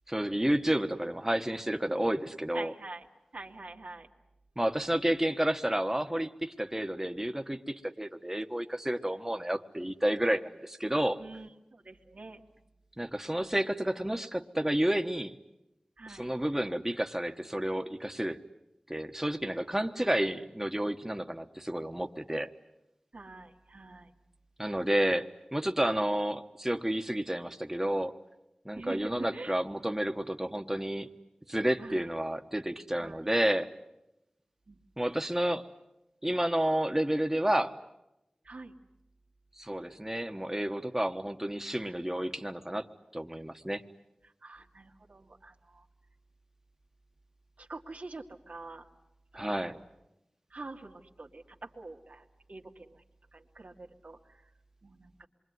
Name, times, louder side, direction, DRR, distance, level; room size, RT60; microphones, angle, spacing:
voice 1, 0.1-2.7 4.6-11.2 13.0-15.4 16.1-18.4 18.9-22.5 24.6-28.1 28.6-31.1 31.5-33.7 35.0-35.7 36.2-37.8 39.6-42.9 43.1-43.8 49.3-49.8, right 1 dB, 15° right, 6 dB, 1.3 m, -30 dB
voice 2, 2.5-3.1 3.3-4.1 11.2-12.4 16.0-16.3 20.0-20.1 23.1-24.1 28.8-29.6 31.8-32.1 33.0-33.3 34.7-34.8 38.4-38.7 44.2-45.9 47.6-48.9 49.3-49.8 50.5-53.0 53.3-54.5 54.8-55.3, right 3 dB, 90° right, 1 dB, 2.2 m, -46 dB
27.0 x 23.5 x 9.4 m, 0.90 s
wide cardioid pair, 50°, 2 cm